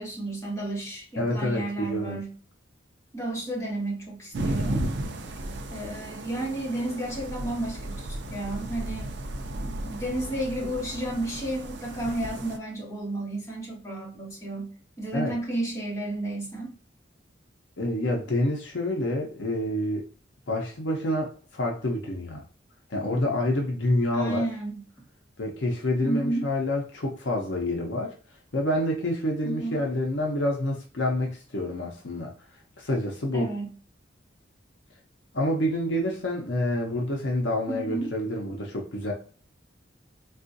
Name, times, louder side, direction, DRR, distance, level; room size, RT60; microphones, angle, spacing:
voice 1, 0.0-2.3 3.1-4.9 5.7-9.1 9.5-16.7 24.1-24.8 26.0-26.5 29.4-29.8 33.3-33.7 37.7-38.1, right 1 dB, 15° left, -5 dB, 1.4 m, -32 dB
voice 2, 1.2-2.2 15.1-15.3 17.8-20.1 20.5-22.4 22.9-24.5 25.4-28.1 28.5-32.3 32.8-33.5 35.3-39.1, left 1 dB, 70° left, 1 dB, 0.7 m, -28 dB
sound 1, 4.3-12.6, right 1 dB, 65° right, 0.5 m, -34 dB
3.6 x 2.4 x 2.5 m, 0.40 s
head